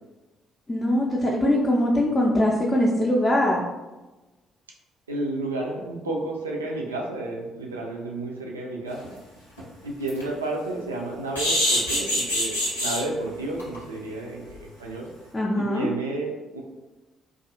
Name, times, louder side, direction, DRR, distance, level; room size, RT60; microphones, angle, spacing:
voice 1, 0.7-3.6 15.3-15.9, left 1 dB, 25° left, -3 dB, 0.4 m, -22 dB
voice 2, 5.1-9.1 9.8-15.1 15.5-16.6, right 2 dB, 80° right, -1 dB, 0.4 m, -31 dB
sound 1, 9.0-9.1 9.6-9.7 10.0-10.2 11.3-13.0 13.6-13.8 14.1-14.2 14.5-14.6, left 1 dB, 90° left, 0.6 m, -24 dB
2.5 x 2.3 x 2.7 m, 1.1 s
figure-of-eight pair, 45°, 0 cm